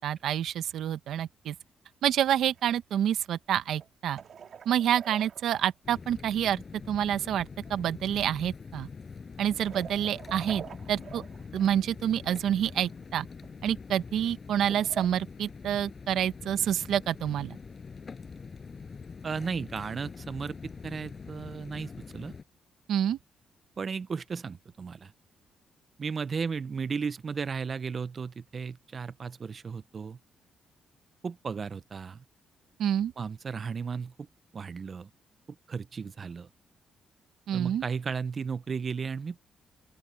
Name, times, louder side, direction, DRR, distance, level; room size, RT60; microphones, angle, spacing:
voice 1, 0.0-1.5 2.0-4.2 4.6-8.9 9.4-11.2 11.5-13.3 13.6-17.6 22.9-23.2 32.8-33.1 37.5-37.8, right 10 dB, 80° right, 1.2 m, -28 dB
sound 1, 2.6-2.7 3.8-5.9 7.2-7.3 7.7-7.8 8.7-8.8 9.5-11.8 12.6-12.9 13.3-13.6 14.5-15.1, right 7 dB, 60° right, 1.8 m, -45 dB
sound 2, 5.8-22.4, left 5 dB, 40° left, 7.8 m, -44 dB
voice 2, 19.2-22.3 23.8-25.1 26.0-30.2 31.2-32.2 33.2-34.1 34.5-35.1 35.7-36.5 37.5-39.4, right 5 dB, 45° right, 0.7 m, -35 dB
open air
cardioid pair, 90°, 0 cm